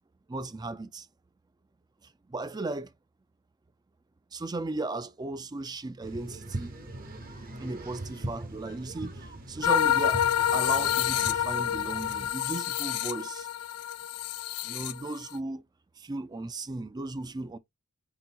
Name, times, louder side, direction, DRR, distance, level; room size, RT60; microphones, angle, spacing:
voice 1, 0.3-1.1 2.3-2.9 4.3-6.8 7.6-10.2 10.5-13.5 14.6-15.6 16.0-17.6, right 2 dB, 20° right, 0.4 m, -36 dB
sound 1, 6.0-12.3, right 1 dB, 40° right, 0.9 m, -40 dB
sound 2, 9.6-15.4, left 10 dB, 80° left, 0.4 m, -28 dB
4.5 x 3.8 x 2.8 m
head